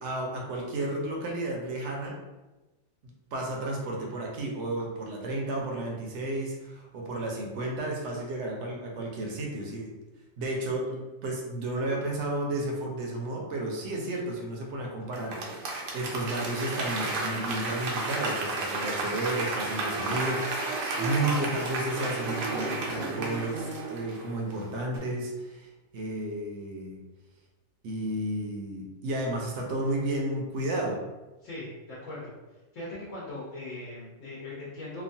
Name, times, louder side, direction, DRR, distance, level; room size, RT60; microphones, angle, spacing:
voice 1, 0.0-2.2 3.0-9.9 10.4-27.0 27.8-31.0, right 1 dB, 70° right, -1 dB, 0.8 m, -32 dB
Applause / Crowd, 15.1-24.6 24.9-25.0, right 2 dB, 90° right, 1.0 m, -32 dB
voice 2, 31.4-32.3 32.7-35.0, left 2 dB, 70° left, -8 dB, 1.2 m, -39 dB
2.9 x 2.3 x 2.6 m, 1.1 s
omnidirectional pair, 1.4 m